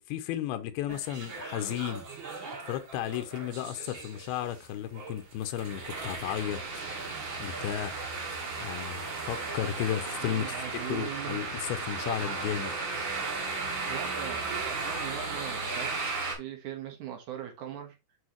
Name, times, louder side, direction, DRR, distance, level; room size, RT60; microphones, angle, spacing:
voice 1, 0.0-2.1 2.7-6.6 7.4-7.9 8.6-12.8, left 11 dB, 90° left, 2.6 m, -34 dB
sound 1, 0.9-16.3, right 4 dB, 40° right, 2.1 m, -36 dB
voice 2, 10.2-11.4 13.8-18.0, right 10 dB, 65° right, 2.3 m, -40 dB
8.4 x 4.8 x 2.9 m
omnidirectional pair, 4.4 m